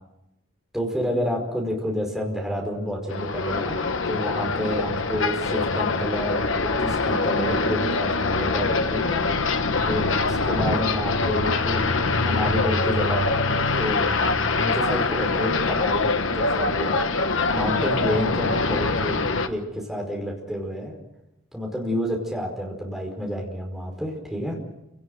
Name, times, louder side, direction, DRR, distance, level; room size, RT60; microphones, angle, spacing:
voice 1, 0.7-3.8 4.1-9.5 9.9-13.4 13.8-14.1 14.5-17.0 17.5-21.0 21.5-24.6, equal, ahead, -1 dB, 5.1 m, -29 dB
sound 1, 3.1-19.5, left 3 dB, 70° left, 1.3 m, -24 dB
29.0 x 18.5 x 6.6 m, 0.91 s
head